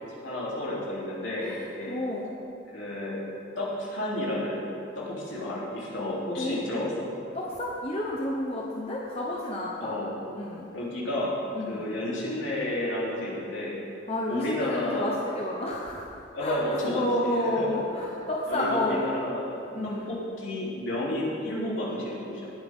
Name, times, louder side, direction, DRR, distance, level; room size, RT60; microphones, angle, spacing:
voice 1, 0.1-1.5 1.8-2.0 2.7-3.2 3.6-4.7 5.0-7.1 9.8-10.1 10.7-11.3 11.7-13.7 14.3-15.1 16.3-17.8 18.5-19.5 19.8-22.5, left 1 dB, 70° left, -6 dB, 3.4 m, -31 dB
voice 2, 1.4-2.3 6.4-6.5 7.3-9.9 10.3-10.7 11.5-11.9 14.1-16.1 16.4-19.0 19.7-20.1, left 1 dB, 30° left, -3 dB, 1.0 m, -30 dB
19.0 x 8.5 x 3.7 m, 2.6 s
head